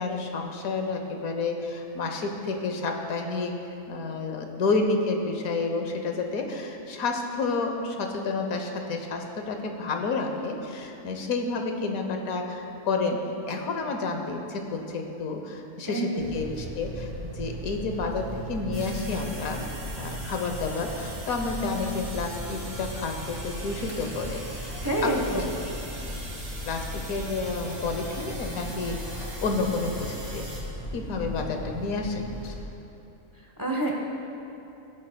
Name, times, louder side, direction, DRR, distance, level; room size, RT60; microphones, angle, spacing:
voice 1, 0.0-3.5 3.9-19.6 20.0-24.7 25.0-25.4 26.6-30.5 30.9-32.5, left 3 dB, 85° left, 4 dB, 1.3 m, -30 dB
sound 1, 16.2-32.6, equal, 20° left, 1.7 m, -37 dB
sound 2, 18.7-30.6, right 1 dB, 75° right, 2.7 m, -42 dB
voice 2, 24.8-25.5 33.6-33.9, right 1 dB, 20° right, -1 dB, 0.8 m, -26 dB
16.0 x 9.7 x 2.3 m, 2.8 s
omnidirectional pair, 1.5 m